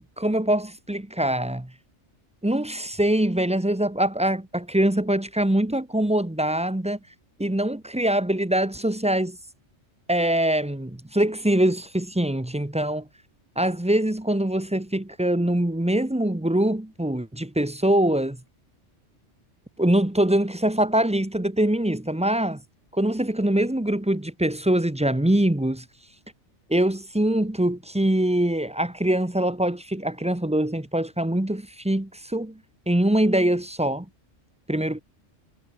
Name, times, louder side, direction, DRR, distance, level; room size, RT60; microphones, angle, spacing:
voice 1, 0.0-1.7 2.4-7.0 7.4-9.4 10.1-13.1 13.6-18.4 19.8-22.6 22.9-25.8 26.7-32.6 32.9-34.1 34.7-35.0, right 1 dB, 5° right, 0.8 m, -23 dB
omnidirectional pair, 1.3 m